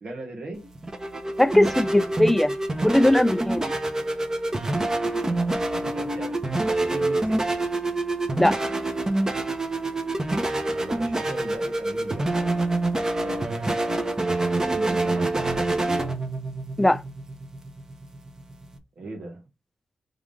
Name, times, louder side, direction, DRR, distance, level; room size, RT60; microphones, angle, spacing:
voice 1, 0.0-0.6 5.7-6.4 6.7-7.6 10.7-12.6 13.2-14.3 14.6-16.2 19.0-19.4, right 2 dB, 75° right, 1.9 m, -38 dB
sound 1, 0.5-18.8, right 2 dB, 30° right, 1.0 m, -26 dB
voice 2, 1.4-2.6 2.8-3.7 8.4-8.6 16.8-17.0, left 1 dB, 10° left, 0.3 m, -19 dB
3.7 x 3.5 x 3.7 m
cardioid pair, 55°, 2 cm